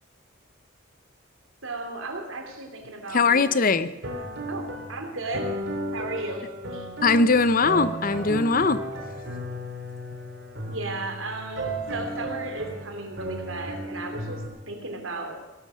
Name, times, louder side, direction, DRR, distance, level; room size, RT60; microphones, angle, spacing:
voice 1, 1.6-3.8 4.5-5.6 5.9-6.4 6.7-6.9 10.7-15.4, right 2 dB, 85° right, 4 dB, 3.0 m, -35 dB
voice 2, 3.1-3.9 7.0-8.8, left 4 dB, 45° left, 14 dB, 0.7 m, -20 dB
sound 1, 4.0-14.5, right 1 dB, 60° right, 3.1 m, -34 dB
18.0 x 12.0 x 6.3 m, 1.2 s
head